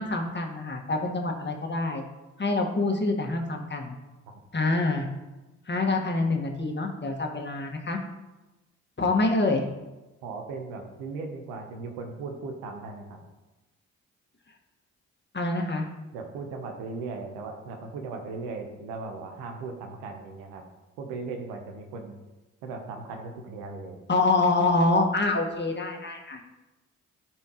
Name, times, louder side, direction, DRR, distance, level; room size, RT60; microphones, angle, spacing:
voice 1, 0.0-2.0 2.4-4.0 4.5-5.1 5.7-8.0 9.0-9.6 15.3-15.9 24.1-26.4, left 2 dB, 30° left, 2 dB, 1.6 m, -26 dB
voice 2, 10.2-13.2 16.1-20.6 21.0-22.2 22.6-24.0, right 4 dB, 85° right, 4 dB, 1.0 m, -37 dB
11.5 x 4.5 x 3.0 m, 1.1 s
hypercardioid pair, 45°, 34 cm